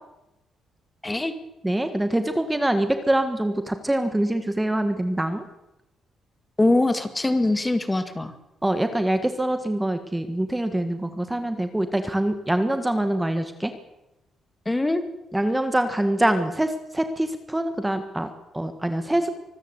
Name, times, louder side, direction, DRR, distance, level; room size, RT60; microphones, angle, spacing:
voice 1, 1.6-5.4 8.6-13.7 15.3-19.3, right 1 dB, 10° right, 9 dB, 1.6 m, -24 dB
voice 2, 6.6-8.3 14.7-15.0, left 2 dB, 15° left, 10 dB, 1.9 m, -22 dB
25.0 x 13.5 x 8.2 m, 0.93 s
cardioid pair, 100°, 0 cm